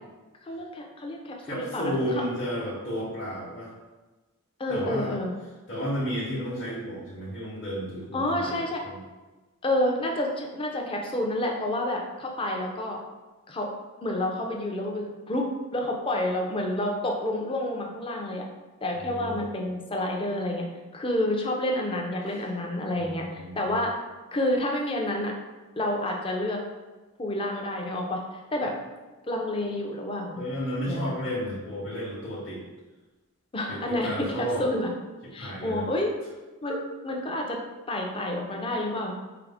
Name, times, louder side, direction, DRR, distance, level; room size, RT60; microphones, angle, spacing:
voice 1, 0.4-2.1 2.5-2.7 4.6-5.3 8.1-8.8 9.6-13.0 13.5-13.7 14.0-18.5 18.8-20.7 20.9-23.9 24.3-25.3 25.8-26.6 27.2-28.7 29.2-30.4 30.9-31.1 33.5-34.9 35.3-36.1 36.6-36.8 37.0-37.6 37.9-39.1, left 1 dB, 25° left, 1 dB, 0.5 m, -29 dB
voice 2, 1.4-3.7 4.7-5.1 5.7-9.0 19.0-19.4 23.0-23.8 30.4-32.6 33.7-34.6 35.4-35.8 36.6-36.7, equal, 45° left, -9 dB, 0.9 m, -32 dB
4.7 x 2.0 x 3.4 m, 1.2 s
head